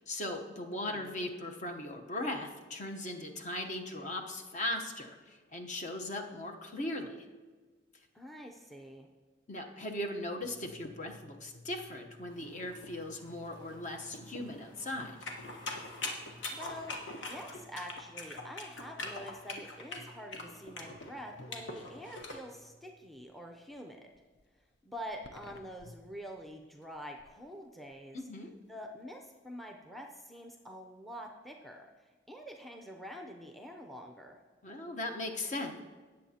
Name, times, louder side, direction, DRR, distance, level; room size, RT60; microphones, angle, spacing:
voice 1, 0.1-7.2 9.5-15.3 28.1-28.5 34.6-35.8, left 1 dB, 40° left, 3 dB, 1.0 m, -38 dB
voice 2, 0.7-1.2 8.1-9.1 16.5-24.1 24.8-28.2 28.7-34.4, equal, ahead, 2 dB, 0.6 m, -46 dB
sound 1, 10.4-23.8 24.1-27.5 27.9-28.2, left 1 dB, 65° left, 0.6 m, -55 dB
Rain, 12.3-17.6, equal, 25° left, 1.8 m, -61 dB
sound 2, 15.2-22.4, left 2 dB, 85° left, 1.3 m, -41 dB
18.0 x 7.7 x 2.9 m, 1.4 s
head